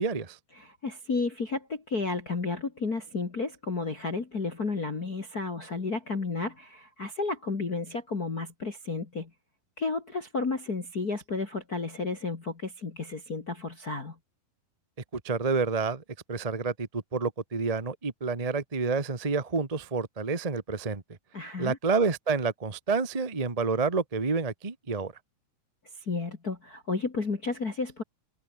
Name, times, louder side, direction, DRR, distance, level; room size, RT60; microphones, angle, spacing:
voice 1, 0.0-0.4 15.1-16.0 16.3-21.0 21.6-25.1, right 4 dB, 85° right, 0.3 m, -29 dB
voice 2, 0.6-9.3 9.8-14.2 21.3-21.8 26.0-28.0, left 3 dB, 30° left, 2.1 m, -32 dB
omnidirectional pair, 4.3 m